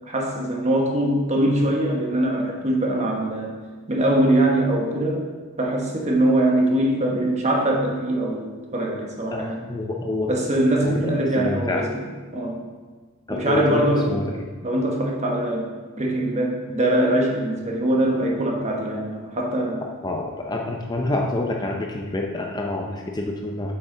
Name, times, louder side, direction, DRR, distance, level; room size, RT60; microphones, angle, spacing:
voice 1, 0.1-3.5 3.9-9.6 10.3-12.0 12.3-12.6 13.3-14.2 14.6-19.8, right 1 dB, 30° right, 0 dB, 1.2 m, -22 dB
voice 2, 9.3-10.3 10.8-11.9 13.3-14.5 20.0-23.8, left 2 dB, 20° left, 1 dB, 0.5 m, -27 dB
8.2 x 6.5 x 3.8 m, 1.4 s
head